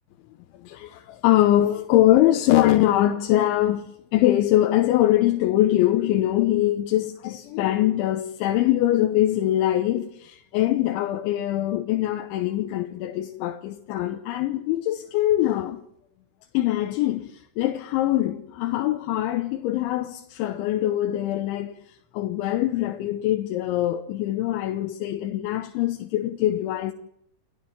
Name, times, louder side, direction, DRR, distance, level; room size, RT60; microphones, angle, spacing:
voice 1, 0.6-15.8 16.5-21.7 22.1-26.9, left 14 dB, 90° left, 3.4 m, -23 dB
30.0 x 12.5 x 7.3 m
omnidirectional pair, 5.2 m